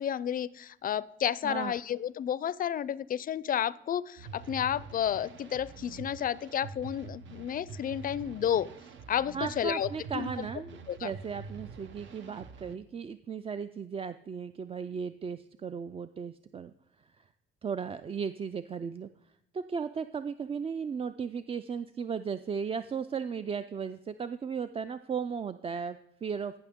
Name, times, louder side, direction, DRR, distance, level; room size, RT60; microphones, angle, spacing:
voice 1, 0.0-8.7 9.1-9.9 10.1-10.5 10.9-11.1, left 9 dB, 45° left, 19 dB, 0.4 m, -31 dB
sound 1, 4.2-12.8, right 4 dB, 70° right, 0.9 m, -46 dB
voice 2, 9.3-16.7 17.2-17.3 17.6-19.1 19.5-26.5, right 6 dB, 30° right, 12 dB, 0.3 m, -36 dB
14.0 x 5.8 x 3.6 m, 0.83 s
cardioid pair, 90°, 20 cm